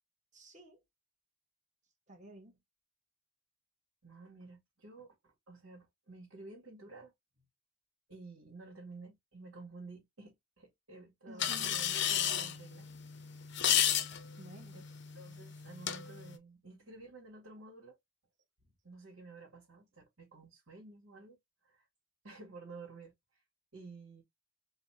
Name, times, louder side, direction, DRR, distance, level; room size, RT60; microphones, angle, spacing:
voice 1, 0.3-0.8 2.1-2.6 11.3-11.8 14.4-14.8, right 1 dB, 35° right, 1.6 m, -52 dB
voice 2, 4.0-7.5 8.1-12.9 15.1-18.0 18.8-21.9 22.2-23.1 23.7-24.2, right 3 dB, 80° right, 2.3 m, -52 dB
sound 1, 11.4-16.4, left 10 dB, 55° left, 0.7 m, -34 dB
4.2 x 2.9 x 2.9 m
head